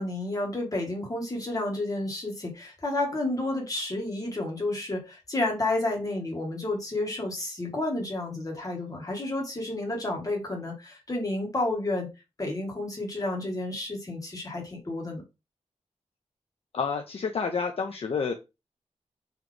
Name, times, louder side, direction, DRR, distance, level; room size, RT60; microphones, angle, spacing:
voice 1, 0.0-12.1 12.4-15.2, left 2 dB, 30° left, 1.5 m, -31 dB
voice 2, 16.7-18.3, left 5 dB, 55° left, 0.5 m, -29 dB
4.0 x 2.9 x 3.3 m
wide cardioid pair, 130°, 12 cm